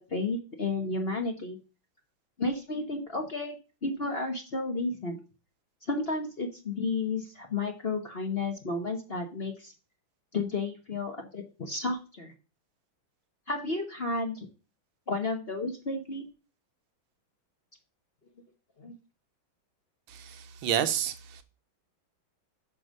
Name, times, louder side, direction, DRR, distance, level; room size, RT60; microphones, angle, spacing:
voice 1, 0.1-1.6 2.4-3.6 3.8-5.2 5.9-9.7 10.3-12.3 13.5-14.5 15.1-16.3 18.8-18.9, left 3 dB, 35° left, 1.1 m, -32 dB
voice 2, 20.1-21.4, right 10 dB, 75° right, 1.5 m, -30 dB
6.4 x 5.2 x 6.4 m
omnidirectional pair, 2.2 m